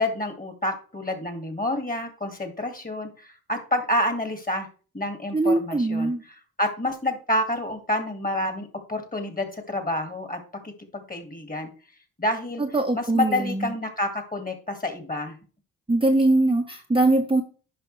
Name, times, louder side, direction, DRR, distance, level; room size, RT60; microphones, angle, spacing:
voice 1, 0.0-4.7 4.9-11.7 12.2-12.6 12.9-15.4, left 1 dB, 20° left, 6 dB, 2.1 m, -28 dB
voice 2, 5.3-6.2 12.7-13.7 15.9-17.4, right 2 dB, 10° right, 1 dB, 1.1 m, -21 dB
10.0 x 5.6 x 3.3 m, 0.39 s
hypercardioid pair, 50°, 43 cm